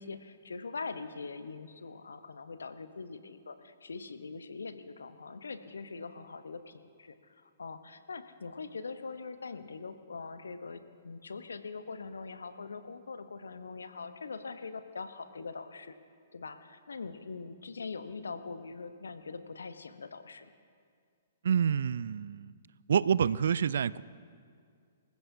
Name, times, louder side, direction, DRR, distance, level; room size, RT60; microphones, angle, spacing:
voice 1, 0.0-15.9 16.3-20.5, left 4 dB, 75° left, 10 dB, 1.0 m, -42 dB
voice 2, 21.4-22.5 22.9-24.0, right 7 dB, 60° right, 19 dB, 0.4 m, -27 dB
26.0 x 15.5 x 2.8 m, 2.2 s
figure-of-eight pair, 115°, 0 cm